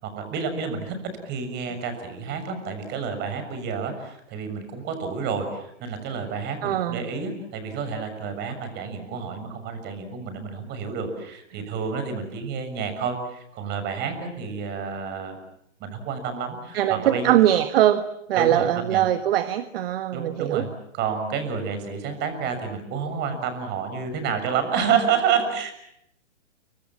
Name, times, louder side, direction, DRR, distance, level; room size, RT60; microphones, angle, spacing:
voice 1, 0.0-15.4 15.8-17.3 18.4-19.0 20.1-20.7 20.9-25.7, right 6 dB, 30° right, 8 dB, 6.8 m, -29 dB
voice 2, 6.6-7.0 16.7-18.0 18.3-20.6, right 12 dB, 50° right, 11 dB, 1.5 m, -21 dB
29.5 x 25.0 x 7.4 m, 0.78 s
hypercardioid pair, 135°, 36 cm